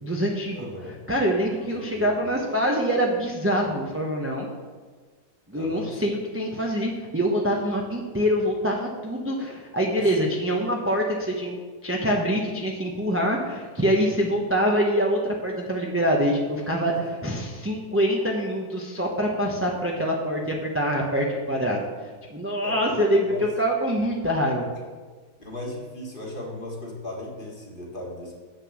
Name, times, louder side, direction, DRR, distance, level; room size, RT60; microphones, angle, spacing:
voice 1, 0.0-4.5 5.5-21.9 22.3-24.7, equal, 10° right, -1 dB, 0.6 m, -25 dB
voice 2, 0.5-1.0 1.5-2.3 2.6-2.7 5.5-6.2 9.9-10.0 22.6-23.5 25.4-28.3, left 1 dB, 35° left, -2 dB, 1.8 m, -37 dB
7.7 x 6.5 x 6.3 m, 1.4 s
omnidirectional pair, 1.7 m